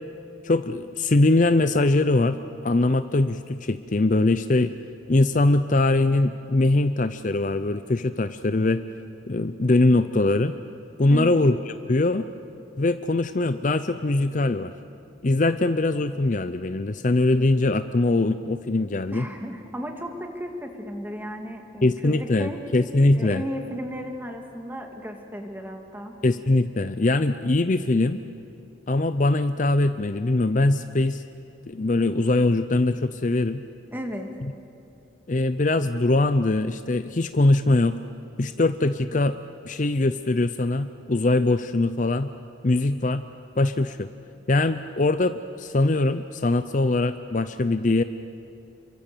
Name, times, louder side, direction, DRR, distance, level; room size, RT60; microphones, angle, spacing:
voice 1, 0.4-4.7 5.1-8.8 9.3-10.5 11.0-12.3 12.8-14.7 15.2-19.3 21.8-23.4 26.2-28.2 28.9-31.2 31.7-33.6 35.3-38.0 38.4-39.4 39.6-42.3 42.6-43.2 43.6-44.1 44.5-48.0, left 2 dB, 40° left, 11 dB, 0.6 m, -22 dB
voice 2, 11.1-11.4 19.1-22.6 23.1-26.1 33.9-34.3, equal, 10° right, 3 dB, 2.2 m, -34 dB
29.5 x 23.5 x 6.9 m, 2.5 s
head